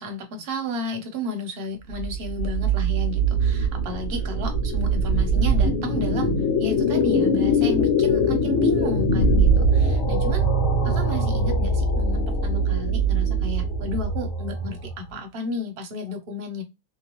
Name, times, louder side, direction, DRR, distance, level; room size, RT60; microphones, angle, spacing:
voice 1, 0.0-10.5 10.8-16.6, left 1 dB, 50° right, 0.8 m, -33 dB
sound 1, 1.9-15.1, right 1 dB, 50° left, 1.2 m, -22 dB
2.8 x 2.2 x 2.9 m
omnidirectional pair, 1.7 m